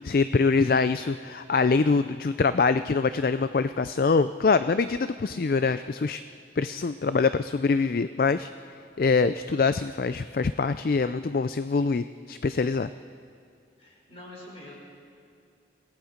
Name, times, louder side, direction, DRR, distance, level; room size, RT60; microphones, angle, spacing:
voice 1, 0.0-6.2 6.6-8.5 9.0-12.9, left 4 dB, 55° left, 12 dB, 0.4 m, -24 dB
voice 2, 13.8-14.7, left 1 dB, 35° left, -3 dB, 5.8 m, -45 dB
29.0 x 18.5 x 5.1 m, 2.4 s
head